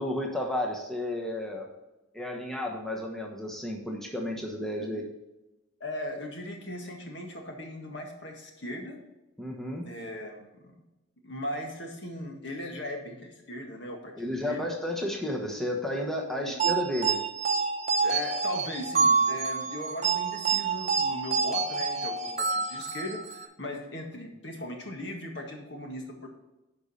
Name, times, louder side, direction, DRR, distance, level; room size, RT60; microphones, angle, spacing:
voice 1, 0.0-1.7 2.1-5.1 9.4-9.9 14.2-17.2, left 1 dB, ahead, 0 dB, 1.1 m, -32 dB
voice 2, 5.8-9.0 9.8-10.7 11.2-14.7 16.4-16.5 18.0-26.3, left 1 dB, 60° left, 1 dB, 1.7 m, -38 dB
sound 1, 16.6-23.5, right 5 dB, 35° right, 0.9 m, -27 dB
10.0 x 5.2 x 4.2 m, 1.0 s
head